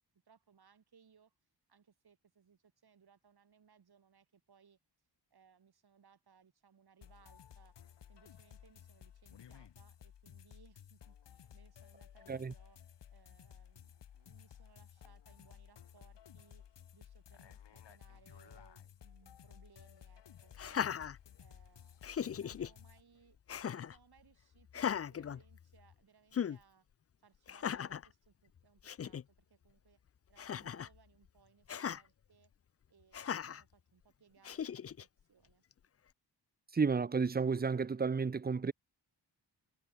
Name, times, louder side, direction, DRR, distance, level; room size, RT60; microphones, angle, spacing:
voice 1, 0.3-1.3 1.7-4.8 5.3-12.8 13.1-21.0 21.4-23.4 23.7-26.9 27.2-30.0 30.3-32.5 32.9-35.6, right 6 dB, 60° right, 7.1 m, -67 dB
sound 1, 7.0-23.0, left 9 dB, 75° left, 1.5 m, -57 dB
Laughter, 20.5-21.7 22.0-22.7 23.5-24.0 24.7-25.9 26.3-26.6 27.5-28.1 28.6-28.7 28.8-29.2 30.4-31.0 31.7-32.0 33.1-33.6 34.4-35.0, left 8 dB, 35° left, 0.4 m, -38 dB
voice 2, 36.7-38.7, right 5 dB, 20° right, 0.6 m, -32 dB
wide cardioid pair, 160°, 43 cm